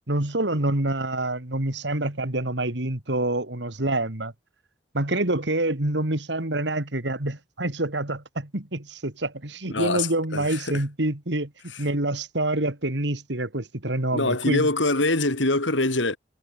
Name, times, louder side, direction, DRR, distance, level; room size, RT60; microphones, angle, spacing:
voice 1, 0.1-4.3 4.9-11.5 11.8-14.7, right 2 dB, 70° right, 2.8 m, -26 dB
voice 2, 9.7-10.8 11.7-11.9 14.1-16.2, left 2 dB, 85° left, 4.1 m, -24 dB
head